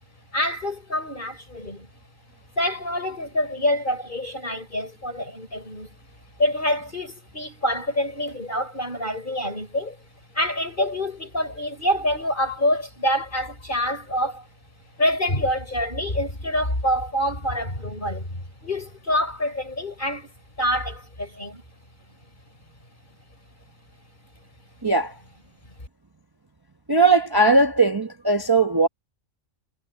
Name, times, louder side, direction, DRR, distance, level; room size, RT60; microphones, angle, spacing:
voice 1, 0.3-1.9 2.6-5.9 6.4-10.0 10.3-14.5 15.0-21.6, left 1 dB, 40° left, 5.7 m, -26 dB
voice 2, 24.8-25.1 26.9-28.9, right 3 dB, 20° right, 1.1 m, -19 dB
omnidirectional pair, 1.3 m